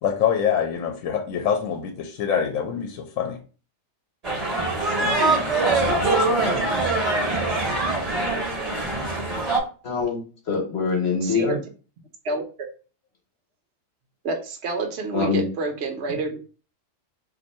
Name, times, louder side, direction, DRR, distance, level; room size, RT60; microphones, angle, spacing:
voice 1, 0.0-3.4 4.8-5.2 5.8-6.4, left 8 dB, 80° left, 5 dB, 1.0 m, -26 dB
sound 1, 4.2-9.6, right 2 dB, 30° right, 0.9 m, -23 dB
voice 2, 9.8-11.6 15.1-15.5, left 5 dB, 55° left, 1 dB, 1.1 m, -24 dB
voice 3, 11.2-11.6 12.2-12.7 14.2-16.4, right 3 dB, 60° right, 3 dB, 1.0 m, -28 dB
2.7 x 2.6 x 4.1 m, 0.36 s
omnidirectional pair, 1.4 m